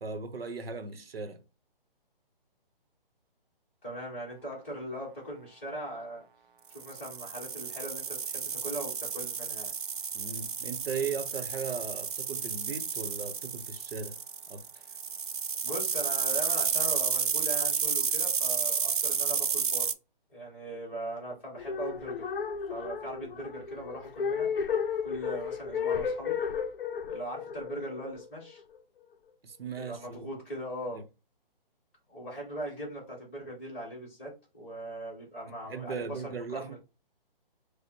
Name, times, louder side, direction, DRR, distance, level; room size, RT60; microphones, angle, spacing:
voice 1, 0.0-1.4 10.1-14.2 14.5-14.7 29.4-30.3 30.9-31.0 35.7-36.8, right 5 dB, 80° right, 0.8 m, -37 dB
voice 2, 3.8-6.2 6.7-9.7 15.6-19.9 20.3-22.3 22.7-24.5 25.0-26.4 27.1-28.6 29.8-31.0 32.1-36.8, right 1 dB, 15° left, 1.1 m, -40 dB
sound 1, 6.8-19.9, right 6 dB, 60° right, 0.4 m, -31 dB
sound 2, 21.6-28.8, left 6 dB, 70° left, 0.5 m, -33 dB
5.0 x 2.1 x 2.9 m
hypercardioid pair, 175°, 29 cm